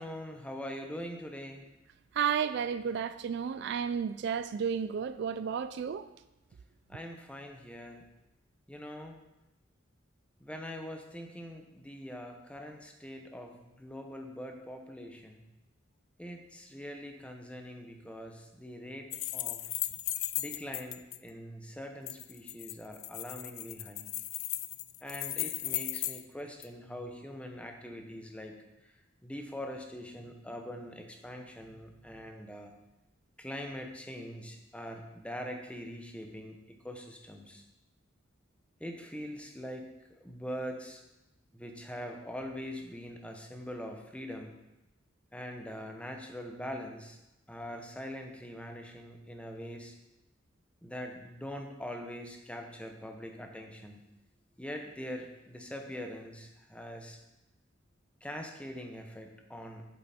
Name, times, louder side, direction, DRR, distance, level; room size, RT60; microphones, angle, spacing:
voice 1, 0.0-1.7 6.9-8.0 8.7-9.1 10.4-15.4 16.2-19.6 20.4-24.1 25.0-28.6 28.8-28.9 29.2-32.7 33.4-37.6 38.8-41.0 41.5-44.5 45.3-47.2 47.5-49.9 50.8-54.0 54.6-57.2 58.2-59.8, equal, 5° left, 0.9 m, -43 dB
voice 2, 2.1-6.1, right 7 dB, 60° right, 0.3 m, -32 dB
sound 1, 19.1-21.2 22.1-26.2 26.6-26.7, left 16 dB, 90° left, 0.4 m, -36 dB
7.7 x 7.6 x 4.3 m
head